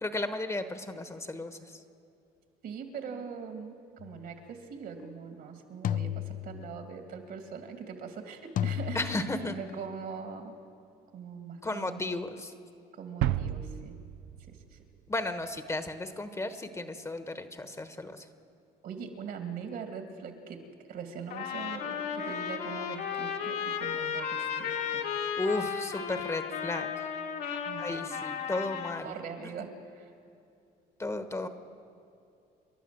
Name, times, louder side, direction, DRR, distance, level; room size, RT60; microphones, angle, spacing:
voice 1, 0.0-1.6 8.9-9.5 11.6-12.5 15.1-18.2 25.4-26.9 27.8-29.1 29.6-29.7 31.0-31.5, left 2 dB, 15° left, 9 dB, 1.2 m, -34 dB
voice 2, 2.6-3.7 4.0-10.6 11.1-12.1 12.9-13.9 14.5-14.8 18.8-20.6 20.9-25.0 27.6-28.1 29.0-30.1, right 6 dB, 65° right, 5 dB, 2.7 m, -42 dB
sound 1, 4.0-4.3 5.8-7.0 8.6-9.7, left 10 dB, 55° left, 0.5 m, -34 dB
sound 2, 13.2-15.3, right 12 dB, 90° right, 0.6 m, -32 dB
Trumpet, 21.3-29.0, left 7 dB, 75° left, 2.2 m, -34 dB
29.0 x 11.5 x 7.8 m, 2.6 s
cardioid pair, 110°, 17 cm